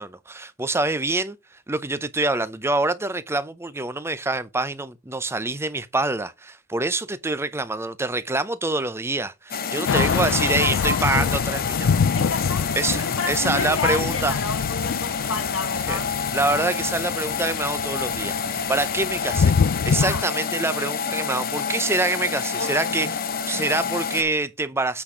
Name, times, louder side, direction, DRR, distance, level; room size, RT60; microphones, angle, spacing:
voice 1, 0.0-1.4 1.7-12.0 12.8-14.3 15.9-16.0 16.3-19.5 19.8-23.1 23.5-25.0, right 2 dB, 15° right, 0.6 m, -26 dB
sound 1, 9.5-24.2, left 6 dB, 45° left, 0.8 m, -28 dB
voice 2, 9.8-11.4 12.1-16.1 20.0-20.3 22.5-23.1 23.5-23.9, left 3 dB, 90° left, 1.7 m, -31 dB
Thunder / Rain, 9.9-20.2, left 6 dB, 70° left, 0.4 m, -26 dB
8.5 x 4.3 x 4.8 m
head